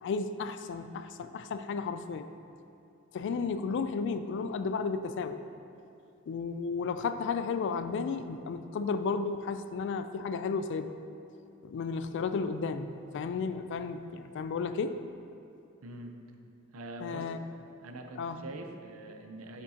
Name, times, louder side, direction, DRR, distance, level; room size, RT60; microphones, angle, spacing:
voice 1, 0.0-2.3 3.1-5.4 6.3-10.9 11.6-15.0 17.0-17.4 18.2-18.4, left 5 dB, 55° left, 11 dB, 0.3 m, -33 dB
voice 2, 15.8-16.2 16.7-17.3 17.8-19.6, right 1 dB, 75° right, 4 dB, 0.6 m, -44 dB
8.1 x 6.1 x 2.8 m, 2.5 s
head